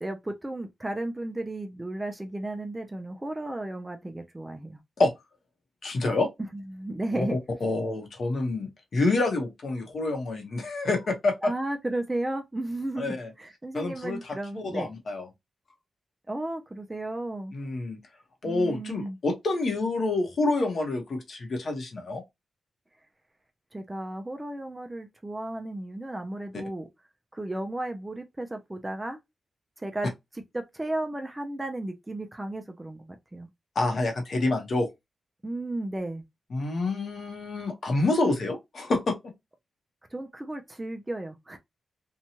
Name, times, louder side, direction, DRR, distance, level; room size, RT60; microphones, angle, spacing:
voice 1, 0.0-4.8 6.5-7.4 11.4-14.9 16.3-17.5 18.4-19.2 23.7-26.9 27.3-29.2 29.8-30.1 30.5-33.5 35.4-36.2 40.1-41.6, right 1 dB, 10° right, 0.4 m, -34 dB
voice 2, 5.8-6.3 7.2-11.5 13.0-13.3 13.7-15.3 17.5-18.0 18.4-22.2 33.7-34.9 36.5-39.2, left 2 dB, 50° left, 0.8 m, -27 dB
2.7 x 2.2 x 2.8 m
wide cardioid pair, 165°, 0 cm